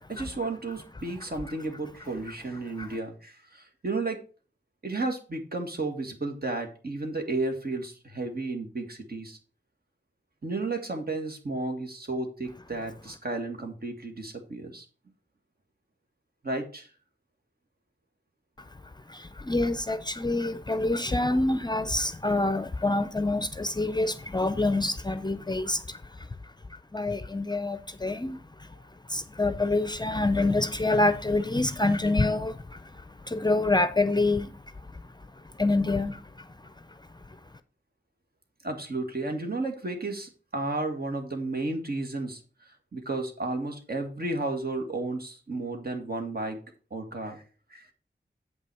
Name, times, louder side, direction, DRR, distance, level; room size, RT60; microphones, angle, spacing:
voice 1, 0.1-4.2 4.8-9.4 10.4-14.9 16.4-16.9 38.6-42.4 42.9-46.6 46.9-47.4 47.7-47.9, right 2 dB, 55° right, 1.9 m, -33 dB
voice 2, 19.1-26.0 26.9-28.4 29.1-32.5 33.3-34.5 35.6-36.2, left 2 dB, 20° left, 0.6 m, -26 dB
7.7 x 5.8 x 4.7 m
wide cardioid pair, 60°, 19 cm